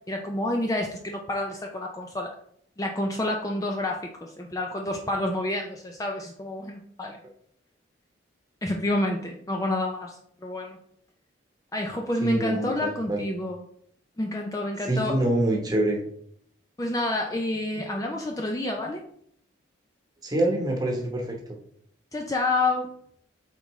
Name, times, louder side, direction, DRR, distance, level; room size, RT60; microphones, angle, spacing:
voice 1, 0.0-2.3 2.8-7.2 8.6-10.8 11.7-13.6 14.2-15.2 16.8-19.0 22.1-22.9, left 1 dB, 15° left, 2 dB, 0.4 m, -29 dB
voice 2, 12.2-13.2 14.8-16.0 20.2-21.4, right 1 dB, 20° right, 1 dB, 1.0 m, -25 dB
8.1 x 3.8 x 3.1 m, 0.68 s
head